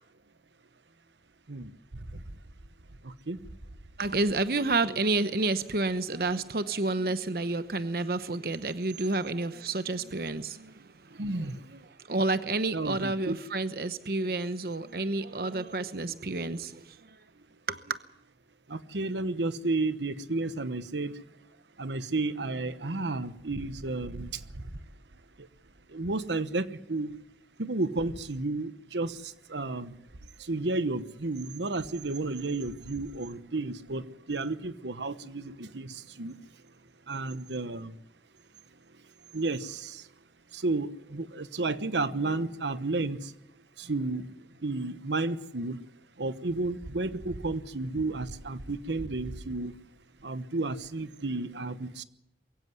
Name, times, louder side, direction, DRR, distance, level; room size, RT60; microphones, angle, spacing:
voice 1, 3.0-3.4 11.1-11.7 12.7-13.4 18.7-21.2 21.8-24.7 25.4-25.5 25.9-27.1 27.6-30.0 30.4-36.3 37.1-38.0 39.3-40.1 40.5-43.3 43.8-44.3 44.6-45.8 46.2-49.8 50.2-52.0, right 2 dB, 85° right, 13 dB, 1.1 m, -32 dB
voice 2, 4.0-11.2 11.7-17.2 17.7-18.0, right 2 dB, 55° right, 12 dB, 0.9 m, -30 dB
23.0 x 16.0 x 9.5 m, 0.81 s
head